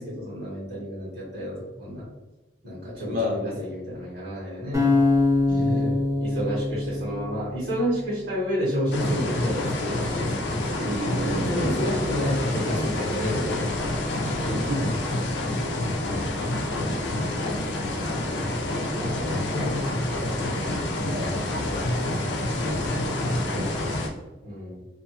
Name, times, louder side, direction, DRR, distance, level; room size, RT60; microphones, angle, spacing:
voice 1, 0.0-2.1 2.6-5.0 6.2-10.5 11.2-13.7 18.9-20.0 24.4-24.8, equal, 90° right, -9 dB, 1.1 m, -30 dB
voice 2, 3.0-3.6 5.5-6.0 10.8-11.8 14.4-14.9 21.0-21.4 23.2-23.9, left 1 dB, 55° right, -3 dB, 0.6 m, -31 dB
sound 1, 4.7-7.9, left 3 dB, 15° right, 0.7 m, -23 dB
sound 2, 8.9-24.1, left 1 dB, 85° left, 0.5 m, -27 dB
2.6 x 2.2 x 2.8 m, 1.1 s
head